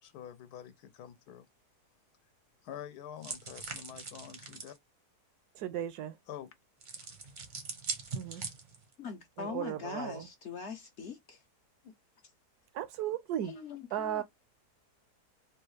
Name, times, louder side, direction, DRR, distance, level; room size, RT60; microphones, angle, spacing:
voice 1, 0.0-1.5 2.6-4.7 6.3-6.5 8.3-8.5 11.8-11.9, left 10 dB, 80° left, 1.2 m, -47 dB
sound 1, 3.2-4.8 6.8-8.9, right 5 dB, 45° right, 0.6 m, -41 dB
voice 2, 5.5-6.2 8.1-8.4 9.4-10.3 12.7-13.5 13.9-14.2, right 11 dB, 75° right, 1.1 m, -36 dB
voice 3, 9.0-11.4 13.4-14.2, left 5 dB, 60° left, 0.8 m, -42 dB
3.4 x 2.3 x 3.1 m
omnidirectional pair, 1.7 m